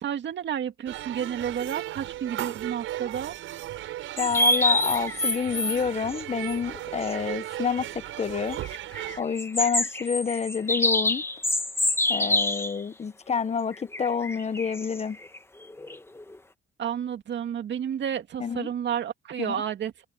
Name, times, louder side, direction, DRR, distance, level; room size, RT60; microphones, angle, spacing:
voice 1, 0.0-3.4 16.8-20.0, right 9 dB, 65° right, 2.4 m, -31 dB
sound 1, 0.9-9.2, right 14 dB, 85° right, 6.2 m, -36 dB
voice 2, 4.2-8.6 9.2-11.2 12.1-15.2 18.4-18.7 19.4-19.6, left 6 dB, 35° left, 1.1 m, -28 dB
sound 2, 4.2-5.8 6.1-6.2 6.5-6.6 7.0-7.1 8.5-12.8 13.7-16.4, left 2 dB, 10° left, 1.8 m, -26 dB
cardioid pair, 90°, 20 cm